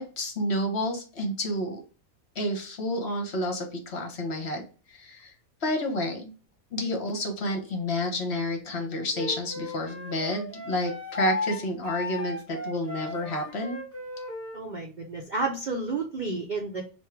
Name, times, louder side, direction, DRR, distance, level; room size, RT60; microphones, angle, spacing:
voice 1, 0.0-1.8 2.3-4.6 4.9-5.3 5.6-6.3 6.7-13.8, left 1 dB, 50° left, 4 dB, 1.1 m, -30 dB
Wind instrument woodwind instrument, 9.1-14.6, left 2 dB, 10° left, 0.7 m, -35 dB
voice 2, 14.5-16.8, right 3 dB, 50° right, 0 dB, 0.5 m, -31 dB
3.6 x 2.6 x 4.4 m, 0.35 s
omnidirectional pair, 1.5 m